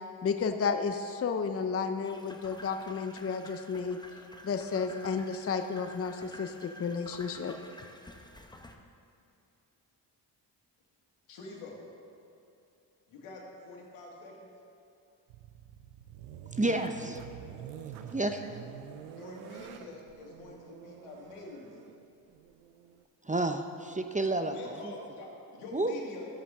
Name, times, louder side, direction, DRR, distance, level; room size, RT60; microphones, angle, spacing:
voice 1, 0.2-4.0 4.4-7.6, left 5 dB, 30° left, 7 dB, 0.6 m, -32 dB
sound 1, 2.0-8.8, left 1 dB, 10° left, 1.0 m, -50 dB
voice 2, 11.3-11.8 13.1-14.5 18.2-18.6 19.1-21.9 24.5-26.3, left 3 dB, 80° left, -1 dB, 2.0 m, -47 dB
sound 2, 15.3-23.0, right 9 dB, 90° right, 0.7 m, -47 dB
voice 3, 16.6-17.2 18.1-18.5 23.3-24.8 25.7-25.9, right 2 dB, 15° right, 6 dB, 0.6 m, -30 dB
13.0 x 8.1 x 3.6 m, 2.7 s
supercardioid pair, 50°, 50 cm